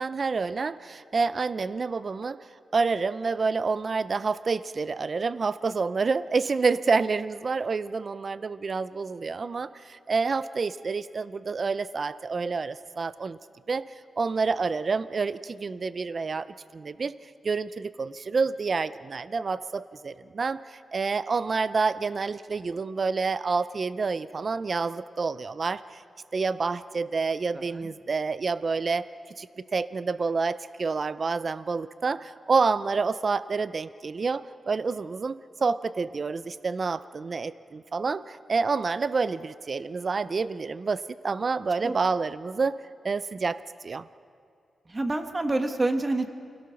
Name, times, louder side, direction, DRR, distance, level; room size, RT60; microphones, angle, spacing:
voice 1, 0.0-2.4 2.7-13.4 13.7-13.8 14.2-17.1 17.4-26.0 26.3-29.1 29.4-29.5 29.7-42.8 43.0-44.1, right 4 dB, 40° right, 15 dB, 0.5 m, -28 dB
voice 2, 44.9-46.3, right 2 dB, 20° right, 7 dB, 1.4 m, -27 dB
29.0 x 17.5 x 5.8 m, 2.5 s
wide cardioid pair, 160°, 0 cm